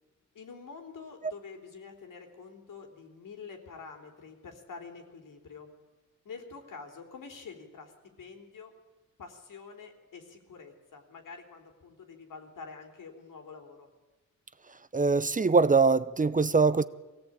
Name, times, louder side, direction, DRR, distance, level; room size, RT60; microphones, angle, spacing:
voice 1, 0.3-5.7 6.3-7.9 8.2-8.7 9.2-13.9, left 5 dB, 90° left, 3.5 m, -47 dB
voice 2, 14.9-16.8, right 4 dB, 25° right, 0.6 m, -23 dB
23.0 x 16.5 x 8.7 m
wide cardioid pair, 130°, 31 cm